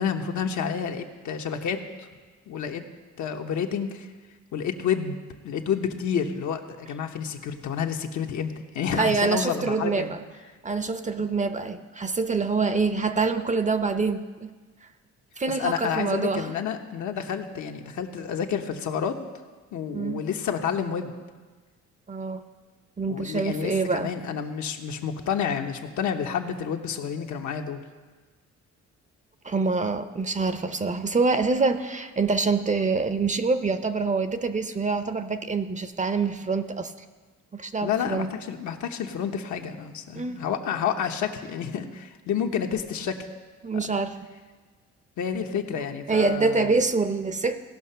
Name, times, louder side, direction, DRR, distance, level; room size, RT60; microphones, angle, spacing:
voice 1, 0.0-2.1 2.5-2.8 3.2-4.1 4.5-5.2 5.4-10.1 15.5-19.2 19.7-21.1 23.1-27.8 37.8-43.2 43.7-43.9 45.2-46.8, left 7 dB, 70° left, 4 dB, 1.0 m, -29 dB
voice 2, 8.9-10.2 10.6-14.5 15.4-16.5 19.9-20.2 22.1-22.4 23.0-24.1 29.4-36.9 37.5-38.3 40.1-40.4 43.6-44.2 46.1-47.6, right 4 dB, 25° right, 10 dB, 0.6 m, -25 dB
17.0 x 5.8 x 5.6 m, 1.4 s
cardioid pair, 90°, 30 cm